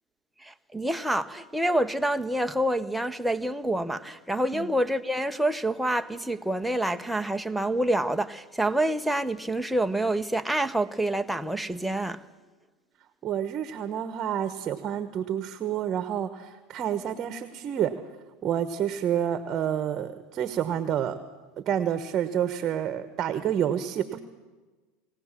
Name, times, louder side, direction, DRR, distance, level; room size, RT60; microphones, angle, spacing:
voice 1, 0.4-12.2, right 1 dB, ahead, 0.9 m, -27 dB
voice 2, 13.2-17.9 18.4-21.2 21.7-24.2, right 9 dB, 40° right, 1.2 m, -29 dB
21.0 x 17.5 x 7.5 m
supercardioid pair, 110°, 0 cm